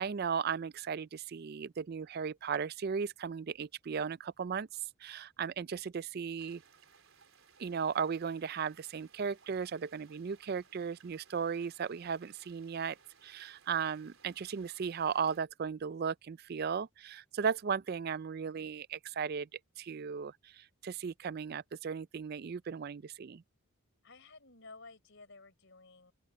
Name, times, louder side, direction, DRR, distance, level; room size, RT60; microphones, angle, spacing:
voice 1, 0.0-4.7 5.0-6.6 7.6-13.0 13.2-19.5 19.8-23.4, right 6 dB, 45° right, 0.4 m, -36 dB
sound 1, 6.4-15.4, right 6 dB, 65° right, 4.1 m, -64 dB
voice 2, 24.0-26.1, left 3 dB, 55° left, 4.7 m, -54 dB
open air
head